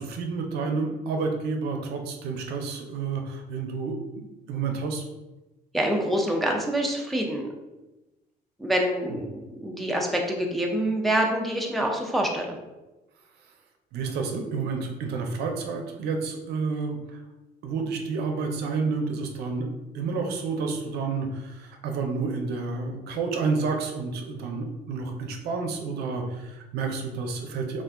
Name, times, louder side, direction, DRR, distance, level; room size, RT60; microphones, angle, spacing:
voice 1, 0.0-4.0 4.5-5.0 9.1-9.2 13.9-17.2 17.6-19.7 19.9-27.8, right 4 dB, 75° right, 3 dB, 0.5 m, -30 dB
voice 2, 5.7-7.5 8.6-9.3 9.6-12.6, right 1 dB, ahead, 0 dB, 0.4 m, -26 dB
2.4 x 2.2 x 3.5 m, 1.0 s
cardioid pair, 110°, 17 cm